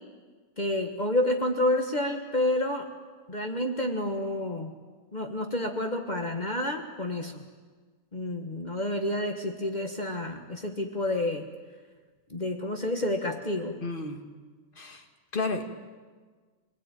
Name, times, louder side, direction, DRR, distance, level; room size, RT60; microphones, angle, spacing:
voice 1, 0.6-2.9 3.3-4.8 5.1-7.4 8.1-11.5 12.3-13.8, left 1 dB, 65° left, 3 dB, 0.4 m, -29 dB
voice 2, 13.8-14.2 14.7-15.0 15.3-15.6, left 3 dB, 25° left, 5 dB, 1.3 m, -31 dB
26.5 x 21.0 x 9.3 m, 1.5 s
omnidirectional pair, 3.5 m